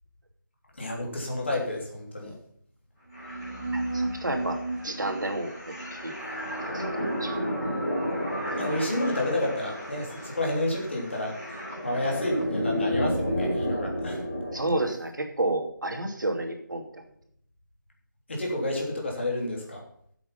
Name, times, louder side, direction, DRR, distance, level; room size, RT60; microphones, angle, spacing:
voice 1, 0.7-2.4 8.5-11.4 11.8-14.2 18.3-19.8, left 1 dB, 35° left, -1 dB, 3.1 m, -30 dB
sound 1, 3.1-14.8, equal, 15° left, 4.4 m, -31 dB
voice 2, 3.7-4.6 4.8-5.7 6.0-6.1 6.6-6.9 7.2-7.3 8.2-8.3 14.5-17.0, right 2 dB, 70° right, 3 dB, 2.7 m, -30 dB
10.5 x 8.1 x 5.4 m, 0.66 s
figure-of-eight pair, 175°, 11 cm